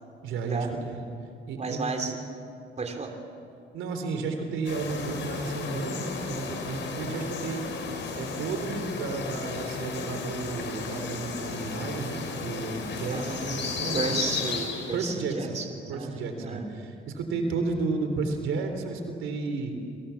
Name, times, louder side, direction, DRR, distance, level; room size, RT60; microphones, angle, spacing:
voice 1, 0.2-1.0 1.5-1.8 3.7-14.2 14.9-15.6 15.9-19.7, right 4 dB, 85° right, 6 dB, 3.7 m, -32 dB
voice 2, 1.6-2.2 2.8-3.2 13.1-13.6 13.9-16.2 16.4-16.6, right 4 dB, 35° right, 5 dB, 3.5 m, -33 dB
sound 1, 4.6-15.1, left 4 dB, 65° left, 5.4 m, -34 dB
30.0 x 25.0 x 7.3 m, 2.5 s
cardioid pair, 90°, 20 cm